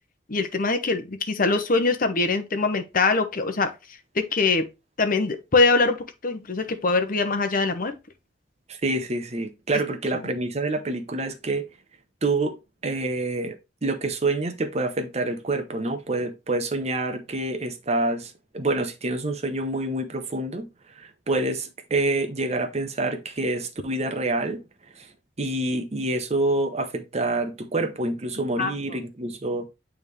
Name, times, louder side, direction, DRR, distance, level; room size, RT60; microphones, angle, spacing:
voice 1, 0.3-3.7 4.1-4.7 5.0-7.9 28.6-28.7, left 3 dB, 50° left, 0.9 m, -23 dB
voice 2, 8.7-11.6 12.2-12.5 12.8-20.7 20.9-24.6 25.0-25.1 25.4-29.7, right 2 dB, 35° right, 0.9 m, -27 dB
8.8 x 3.5 x 3.2 m
head